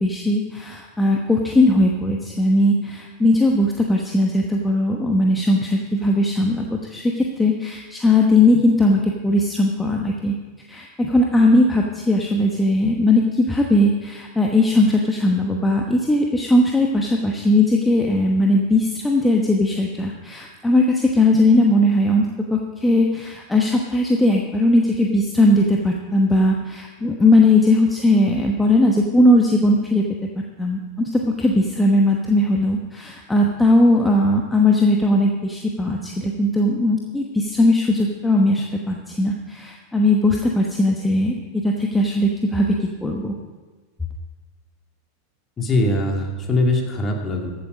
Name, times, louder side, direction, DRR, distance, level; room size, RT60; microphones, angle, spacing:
voice 1, 0.0-10.3 10.7-22.3 22.5-30.0 30.6-42.7 43.0-43.3, left 1 dB, 10° left, 0 dB, 1.1 m, -18 dB
voice 2, 45.6-47.5, left 2 dB, 25° left, 2 dB, 2.2 m, -21 dB
14.5 x 8.3 x 5.1 m, 1.3 s
figure-of-eight pair, 90°, 0 cm